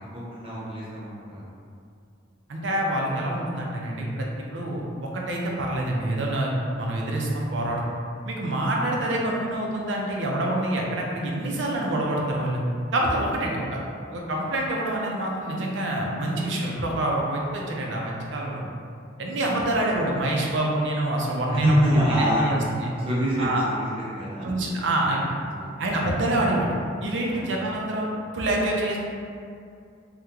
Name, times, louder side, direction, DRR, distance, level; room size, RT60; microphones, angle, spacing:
voice 1, 0.1-1.5 8.7-8.9 19.4-19.6 21.6-24.5 25.5-25.7 27.3-27.4, equal, 30° right, -7 dB, 0.7 m, -26 dB
voice 2, 2.5-7.8 8.3-12.6 12.9-13.8 14.1-18.7 19.2-22.9 23.4-23.6 24.4-25.3 25.8-26.7 27.0-28.1 28.3-29.0, right 1 dB, 65° right, -2 dB, 0.5 m, -26 dB
2.9 x 2.1 x 3.6 m, 2.4 s
head